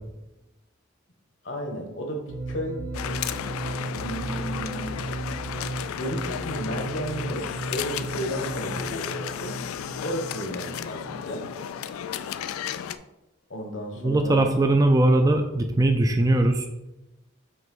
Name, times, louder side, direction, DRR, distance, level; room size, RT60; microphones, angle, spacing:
voice 1, 1.4-2.8 3.9-5.0 5.9-9.6 10.0-11.5 13.5-14.5, equal, 60° left, 3 dB, 1.2 m, -33 dB
sound 1, 2.3-11.9, right 2 dB, 80° right, 0.7 m, -36 dB
sound 2, 2.9-13.0, left 9 dB, 90° left, 0.3 m, -34 dB
voice 2, 14.0-16.7, right 2 dB, 15° right, 6 dB, 0.3 m, -20 dB
6.0 x 3.0 x 5.3 m, 0.98 s
head